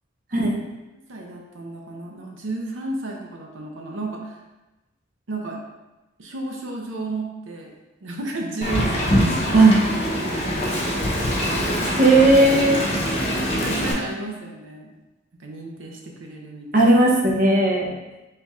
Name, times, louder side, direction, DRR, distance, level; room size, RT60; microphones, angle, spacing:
voice 1, 0.3-0.7 9.5-9.8 12.0-12.8 16.7-17.9, right 2 dB, 45° right, -1 dB, 0.7 m, -16 dB
voice 2, 1.1-4.4 5.3-5.6 6.2-7.7 8.0-9.7 10.3-12.0 13.6-14.9 15.4-16.9, right 2 dB, 80° right, 0 dB, 0.7 m, -33 dB
Wind, 8.6-13.9, equal, 30° left, 0.7 m, -24 dB
4.4 x 3.9 x 2.4 m, 1.1 s
head